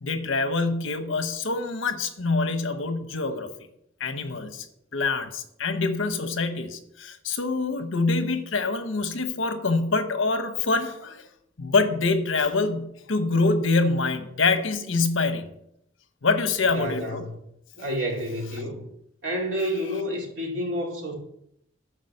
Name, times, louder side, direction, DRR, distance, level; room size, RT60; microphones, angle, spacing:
voice 1, 0.0-3.5 4.0-4.7 4.9-11.2 11.6-15.5 16.2-17.2, left 3 dB, 75° left, 1.0 m, -25 dB
voice 2, 16.7-17.4 17.7-18.8 19.2-21.1, equal, 65° right, 2.6 m, -29 dB
10.0 x 5.0 x 6.6 m
head